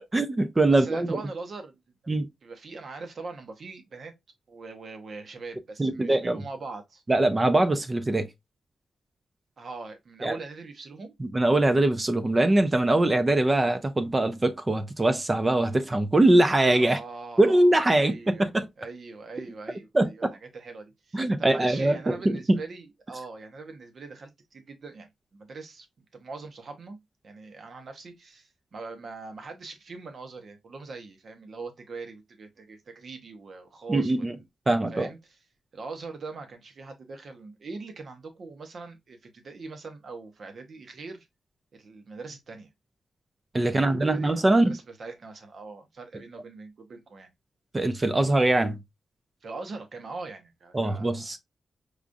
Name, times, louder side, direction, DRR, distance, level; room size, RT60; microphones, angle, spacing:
voice 1, 0.1-1.2 2.1-2.3 5.8-6.4 7.1-8.3 10.2-10.4 11.2-17.0 17.4-18.7 19.9-20.4 21.1-22.6 33.9-34.4 34.7-35.1 43.5-44.8 47.7-48.8 50.7-51.4, right 2 dB, 20° right, 0.3 m, -22 dB
voice 2, 0.7-1.8 2.4-4.1 4.5-7.0 9.6-11.1 16.7-18.5 18.8-20.2 20.5-25.9 26.1-27.0 27.2-34.4 34.9-35.2 35.7-41.3 41.7-42.7 43.7-44.4 44.6-47.3 49.4-51.3, right 3 dB, 50° right, 0.8 m, -42 dB
4.8 x 2.4 x 2.5 m
wide cardioid pair, 175°, 0 cm